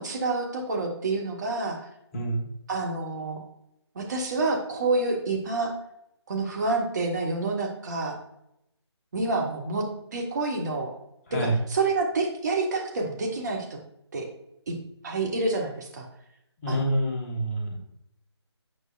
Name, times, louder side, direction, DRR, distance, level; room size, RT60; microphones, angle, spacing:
voice 1, 0.0-1.8 2.7-3.4 3.9-5.7 6.3-8.2 9.1-9.8 10.1-10.9 11.3-13.8 14.1-14.3 14.7-14.8 15.0-16.1 16.7-17.0, right 3 dB, 40° right, 1 dB, 1.4 m, -28 dB
voice 2, 2.1-2.5 11.3-11.5 16.6-17.8, right 1 dB, 30° left, -1 dB, 1.4 m, -27 dB
8.7 x 4.9 x 2.5 m, 0.80 s
figure-of-eight pair, 155°, 15 cm